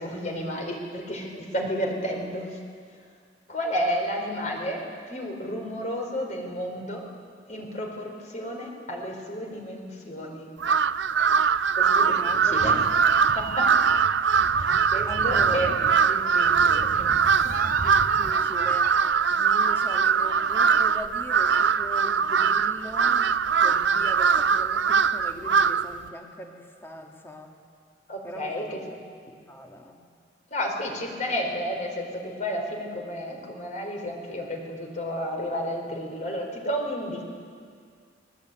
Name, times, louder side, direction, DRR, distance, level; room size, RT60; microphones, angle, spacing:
voice 1, 0.0-2.5 3.5-7.0 7.5-10.5 11.8-12.8 13.3-13.8 14.3-15.7 16.1-17.1 28.1-28.8 30.5-37.2, equal, 40° left, 2 dB, 4.4 m, -32 dB
Crow, 10.6-26.0, right 6 dB, 80° right, 0.6 m, -22 dB
voice 2, 12.1-12.9 15.1-15.8 17.4-19.0 19.3-27.6 28.2-30.0, left 1 dB, 15° left, 2 dB, 2.1 m, -40 dB
Meow, 12.3-19.0, right 3 dB, 50° right, 0.8 m, -37 dB
29.0 x 20.5 x 9.1 m, 2.1 s
head